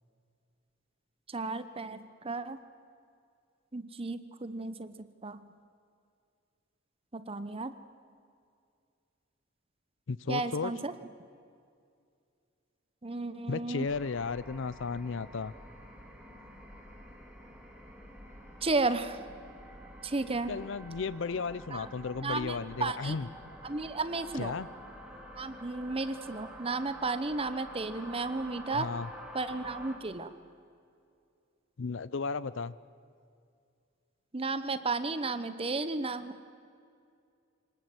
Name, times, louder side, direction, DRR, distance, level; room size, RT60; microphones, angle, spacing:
voice 1, 1.3-2.6 3.7-5.4 7.1-7.7 10.3-10.9 13.0-13.9 18.6-19.2 20.0-20.5 21.7-21.9 22.2-23.2 23.6-24.5 25.3-28.9 29.3-30.3 34.3-36.4, right 3 dB, 30° right, 12 dB, 0.9 m, -33 dB
voice 2, 10.1-10.7 13.5-15.5 20.2-23.3 24.4-24.7 28.7-29.1 31.8-32.7, left 4 dB, 65° left, 17 dB, 0.5 m, -34 dB
sound 1, 13.9-30.0, equal, 5° right, 2.7 m, -48 dB
25.5 x 19.5 x 7.9 m, 2.4 s
head